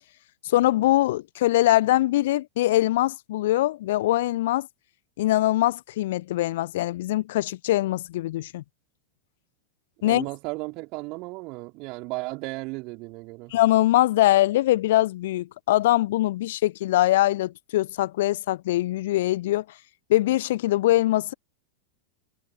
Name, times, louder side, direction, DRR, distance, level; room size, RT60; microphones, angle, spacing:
voice 1, 0.4-4.7 5.2-8.6 10.0-10.2 13.5-19.6 20.1-21.3, left 15 dB, 55° left, 1.0 m, -22 dB
voice 2, 10.0-13.5, right 26 dB, 40° right, 3.6 m, -35 dB
figure-of-eight pair, 90°, 0 cm